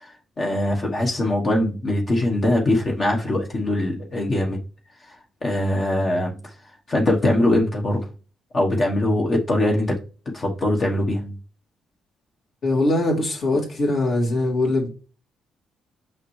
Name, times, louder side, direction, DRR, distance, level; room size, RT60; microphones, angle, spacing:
voice 1, 0.0-4.6 5.1-5.2 5.4-6.5 6.9-8.1 8.5-10.0 10.3-11.4, left 1 dB, 40° left, 0 dB, 1.2 m, -22 dB
voice 2, 12.6-14.9, left 2 dB, 55° left, -2 dB, 2.6 m, -21 dB
5.6 x 5.4 x 3.2 m, 0.35 s
cardioid pair, 90°, 0 cm